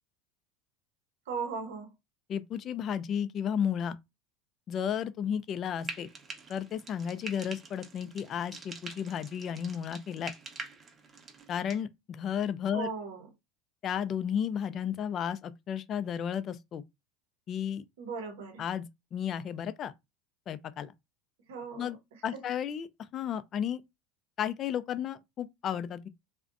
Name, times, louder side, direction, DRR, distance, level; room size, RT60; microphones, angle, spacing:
voice 1, 1.3-1.9 12.7-13.3 18.0-18.6 21.5-22.4, right 5 dB, 80° right, 0.6 m, -38 dB
voice 2, 2.3-4.0 4.7-6.1 6.5-10.3 11.5-12.9 13.8-16.8 17.5-17.9 18.6-18.8 19.1-19.9 20.5-20.9 21.8-22.0 22.2-23.8 24.4-26.1, left 8 dB, 40° left, 0.3 m, -33 dB
Frying (food), 5.8-11.8, right 3 dB, 30° right, 0.6 m, -45 dB
2.5 x 2.1 x 2.5 m
hypercardioid pair, 95°, 0 cm